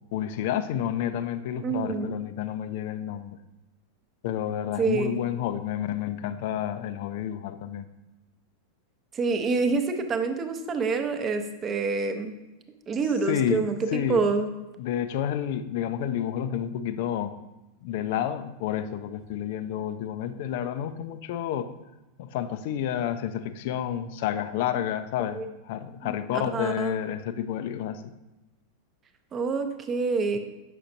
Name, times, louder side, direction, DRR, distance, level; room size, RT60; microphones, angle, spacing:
voice 1, 0.0-3.4 4.2-7.9 13.2-14.2 14.8-17.3 17.8-21.7 22.2-28.2, left 10 dB, 50° left, 11 dB, 0.4 m, -30 dB
voice 2, 1.6-2.2 4.8-5.2 9.1-12.3 12.9-14.5 25.3-25.4 26.0-26.9 29.3-30.4, right 4 dB, 25° right, 7 dB, 0.7 m, -27 dB
7.5 x 5.8 x 2.6 m, 1.0 s
figure-of-eight pair, 90°, 0 cm